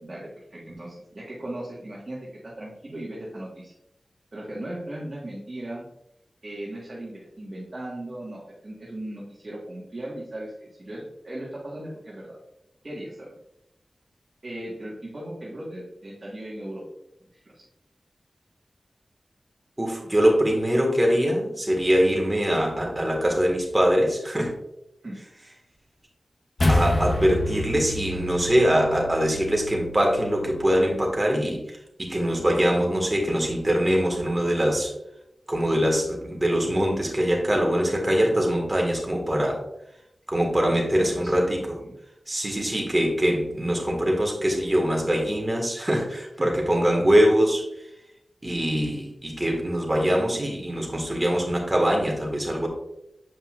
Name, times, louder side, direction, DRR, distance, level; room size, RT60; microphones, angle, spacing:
voice 1, 0.0-3.7 4.3-5.8 6.4-10.5 10.8-12.4 12.8-13.3 14.4-16.8 17.3-17.6 25.0-25.2 40.6-41.6 41.8-41.9 46.4-46.5, right 1 dB, 40° right, -5 dB, 1.6 m, -37 dB
voice 2, 19.8-24.5 26.7-34.9 35.5-39.6 40.3-41.8 42.3-47.9 48.4-52.7, equal, 25° right, 0 dB, 1.8 m, -23 dB
sound 1, 26.6-31.1, left 1 dB, 45° left, 0.8 m, -28 dB
7.6 x 5.4 x 2.5 m, 0.82 s
wide cardioid pair, 90°, 0 cm